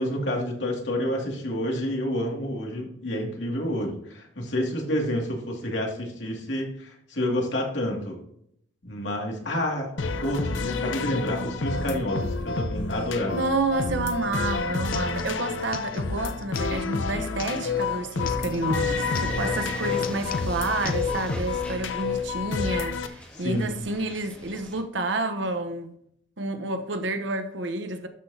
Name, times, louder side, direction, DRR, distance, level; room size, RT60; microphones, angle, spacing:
voice 1, 0.0-8.2 8.8-9.9 10.2-13.4 23.4-23.8, left 1 dB, 75° left, 2.3 m, -29 dB
sound 1, 10.0-23.1, left 4 dB, 90° left, 0.7 m, -29 dB
voice 2, 13.3-25.9 26.4-28.1, right 2 dB, 75° right, 1.0 m, -29 dB
sound 2, 14.2-14.3 14.5-18.7 19.0-19.6 19.9-21.3, left 6 dB, 50° left, 0.6 m, -40 dB
sound 3, 18.7-22.7 22.9-24.8, equal, 10° left, 2.1 m, -37 dB
12.5 x 5.9 x 2.8 m
head